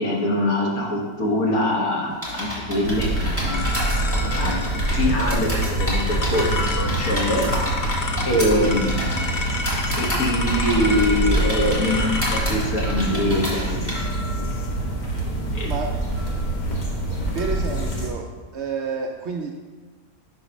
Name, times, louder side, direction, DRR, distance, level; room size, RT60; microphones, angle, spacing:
voice 1, 0.0-3.6 4.2-4.6 4.9-7.8 8.2-9.1 10.0-13.9 14.4-14.5 15.5-15.7, left 1 dB, 75° left, -2 dB, 1.7 m, -24 dB
sound 1, 2.2-13.9, equal, 10° left, 1.7 m, -31 dB
sound 2, 2.3-12.4, left 3 dB, 55° left, 0.5 m, -31 dB
sound 3, 2.8-18.1, right 1 dB, 35° left, 1.0 m, -25 dB
voice 2, 15.6-16.0 17.3-18.3 18.5-19.7, right 4 dB, 65° right, 2 dB, 0.7 m, -29 dB
5.9 x 4.0 x 5.1 m, 1.4 s
omnidirectional pair, 1.5 m